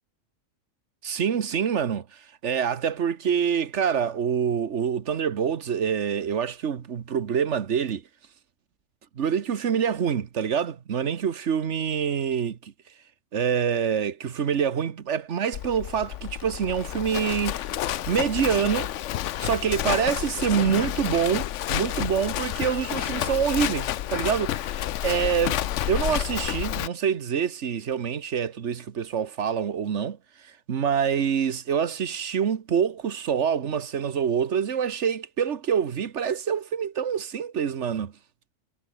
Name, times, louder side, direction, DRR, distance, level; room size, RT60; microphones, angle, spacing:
voice 1, 1.0-8.0 9.2-12.7 13.3-17.7 18.1-18.9 19.4-25.6 25.9-30.2 30.4-38.1, right 7 dB, 70° right, 1.5 m, -26 dB
Livestock farm animals working animals, 15.5-26.9, left 12 dB, 75° left, 1.0 m, -30 dB
omnidirectional pair, 1.3 m